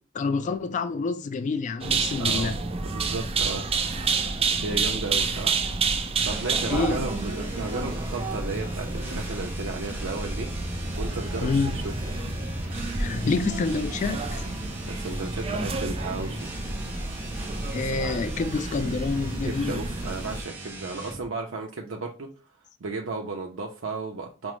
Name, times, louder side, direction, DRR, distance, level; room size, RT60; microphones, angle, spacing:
voice 1, 0.1-2.6 6.7-7.1 11.4-11.7 12.9-14.4 17.7-19.8, left 4 dB, 40° left, 0.3 m, -27 dB
sound 1, 1.8-20.4, right 4 dB, 30° right, 0.5 m, -30 dB
sound 2, 2.2-16.1, left 1 dB, 50° right, 1.1 m, -42 dB
voice 2, 2.2-2.6 2.9-3.7 4.6-5.6 6.2-11.8 14.9-16.5 19.5-22.3 22.8-24.5, right 3 dB, 80° right, 0.5 m, -34 dB
sound 3, 6.1-21.3, right 1 dB, 10° right, 0.9 m, -39 dB
6.0 x 2.0 x 3.0 m
head